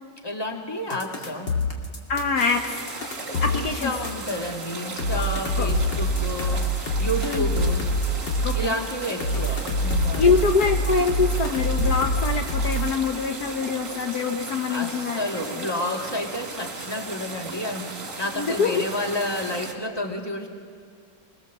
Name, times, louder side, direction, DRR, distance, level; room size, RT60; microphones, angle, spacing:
voice 1, 0.2-1.5 3.5-6.7 7.0-7.9 8.5-10.5 14.7-20.5, left 1 dB, 15° left, 1 dB, 2.0 m, -30 dB
sound 1, 0.9-4.4 5.0-8.7 9.2-12.9, left 1 dB, 85° left, 3.0 m, -25 dB
voice 2, 2.1-2.6 3.4-3.9 5.6-5.7 7.2-7.5 8.4-8.7 10.2-15.7 18.3-18.8, left 5 dB, 65° left, 4 dB, 1.5 m, -24 dB
sound 2, 2.4-19.7, right 3 dB, 45° right, 2.6 m, -36 dB
22.5 x 21.5 x 7.2 m, 2.4 s
omnidirectional pair, 1.9 m